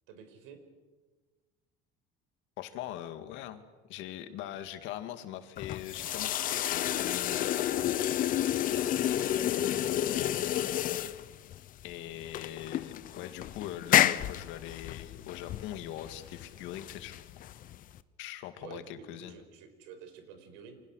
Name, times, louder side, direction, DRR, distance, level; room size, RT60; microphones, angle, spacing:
voice 1, 0.1-0.6 8.9-10.2 18.6-20.8, right 6 dB, 85° right, 7 dB, 5.3 m, -50 dB
voice 2, 2.6-3.6 3.9-7.9 11.8-17.1 18.2-19.4, left 12 dB, 70° left, 9 dB, 2.2 m, -42 dB
sound 1, 5.6-18.0, left 12 dB, 45° left, 0.9 m, -30 dB
29.5 x 25.5 x 6.5 m, 1.3 s
cardioid pair, 150°, 20 cm